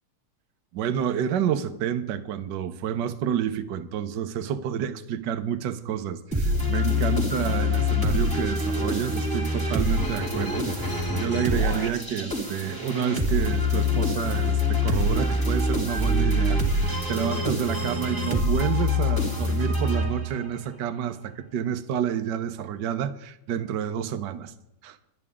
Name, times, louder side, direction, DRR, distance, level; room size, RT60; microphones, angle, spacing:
voice 1, 0.7-24.5 24.8-25.0, right 9 dB, 65° right, 1.5 m, -29 dB
sound 1, 6.3-20.6, left 2 dB, 10° right, 2.9 m, -25 dB
24.5 x 9.9 x 3.7 m
omnidirectional pair, 2.3 m